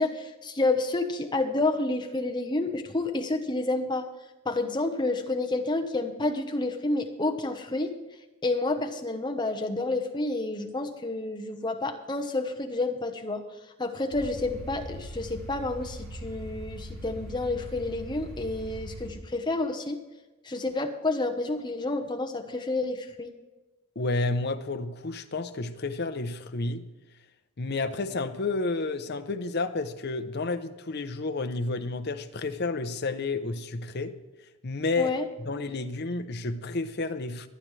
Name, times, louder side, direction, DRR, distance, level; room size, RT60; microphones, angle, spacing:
voice 1, 0.0-4.1 4.4-7.9 8.4-13.4 13.8-20.0 20.4-23.3 35.0-35.2, left 2 dB, 20° left, 1.0 m, -29 dB
sound 1, 14.1-19.1, equal, 70° right, 4.2 m, -41 dB
voice 2, 24.0-26.9 27.6-35.1 35.4-37.5, left 3 dB, 50° left, 0.7 m, -31 dB
24.0 x 8.9 x 3.3 m
head